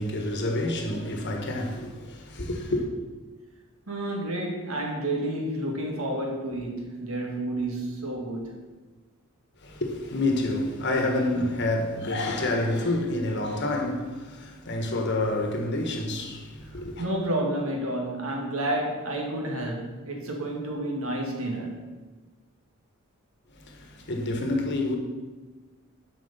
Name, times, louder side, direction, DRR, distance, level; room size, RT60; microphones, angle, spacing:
voice 1, 0.0-2.9 9.6-17.0 23.5-25.0, left 2 dB, 55° left, 1.3 m, -28 dB
voice 2, 3.9-8.6 16.7-21.9, right 1 dB, 75° right, 1.9 m, -30 dB
7.6 x 5.0 x 6.8 m
head